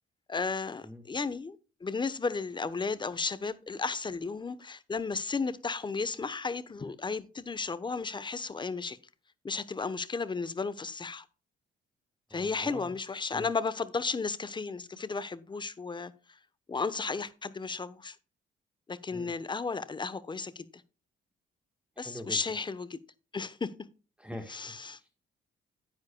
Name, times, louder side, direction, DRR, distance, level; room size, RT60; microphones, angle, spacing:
voice 1, 0.3-9.0 9.4-11.2 12.3-16.4 16.7-18.2 18.9-20.7 22.0-23.0 23.3-23.7 24.5-25.0, left 4 dB, 25° left, 0.9 m, -34 dB
voice 2, 12.3-12.9 13.3-13.5 19.1-19.3 22.0-22.4 24.2-24.7 25.0-25.1, equal, 5° right, 1.4 m, -43 dB
9.9 x 9.4 x 2.2 m
cardioid pair, 90°, 20 cm